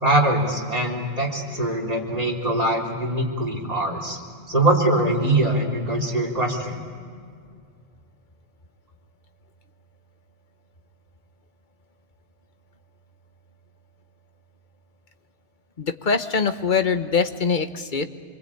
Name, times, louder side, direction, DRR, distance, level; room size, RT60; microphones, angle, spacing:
voice 1, 0.0-4.2 4.5-6.8, right 1 dB, 30° right, 1 dB, 3.9 m, -22 dB
voice 2, 15.8-18.1, left 5 dB, 40° left, 9 dB, 1.2 m, -23 dB
26.5 x 23.0 x 8.7 m, 2.2 s
omnidirectional pair, 1.3 m